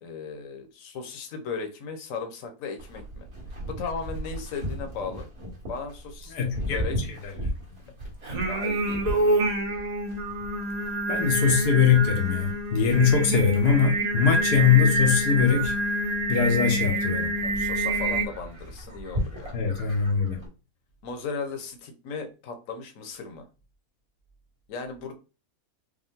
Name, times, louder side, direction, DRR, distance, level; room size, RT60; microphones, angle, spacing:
voice 1, 0.0-3.3 3.7-5.3 5.7-7.0 8.5-9.2 17.4-19.6 21.0-23.4 24.7-25.1, left 5 dB, 60° left, 1.2 m, -36 dB
Livestock farm animals working animals, 2.8-20.5, equal, 65° right, 2.1 m, -38 dB
voice 2, 6.3-6.8 7.2-7.3 11.1-15.7 16.3-17.3 19.5-20.4, left 7 dB, 85° left, 1.5 m, -22 dB
Singing, 8.2-18.2, right 1 dB, 35° right, 0.8 m, -27 dB
5.3 x 2.2 x 3.6 m
omnidirectional pair, 1.6 m